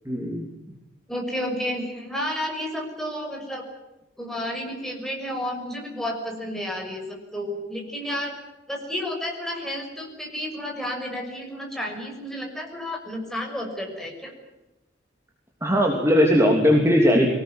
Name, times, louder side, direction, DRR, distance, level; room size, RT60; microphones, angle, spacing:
voice 1, 0.1-0.5 15.6-17.3, equal, 15° right, 1 dB, 3.0 m, -19 dB
voice 2, 1.1-3.6 4.2-8.3 8.7-14.3, equal, ahead, 1 dB, 6.2 m, -31 dB
24.0 x 19.0 x 9.4 m, 0.99 s
head